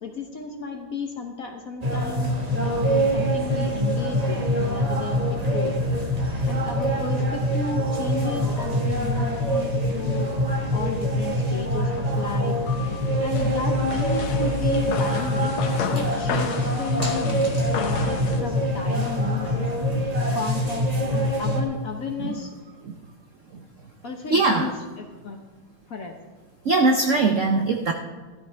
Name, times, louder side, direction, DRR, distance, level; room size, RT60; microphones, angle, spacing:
voice 1, 0.0-5.8 6.5-10.3 10.7-12.6 13.2-15.5 15.9-16.5 16.8-17.4 17.7-19.6 20.3-22.5 24.0-25.4 25.9-26.2, left 5 dB, 55° left, 4 dB, 1.1 m, -33 dB
sound 1, 1.8-21.6, equal, 25° right, 1.1 m, -24 dB
sound 2, 12.7-18.4, left 5 dB, 85° left, 1.9 m, -32 dB
voice 2, 24.3-24.7 26.6-27.9, right 3 dB, 65° right, 4 dB, 0.7 m, -21 dB
14.0 x 13.0 x 3.4 m, 1.3 s
omnidirectional pair, 2.3 m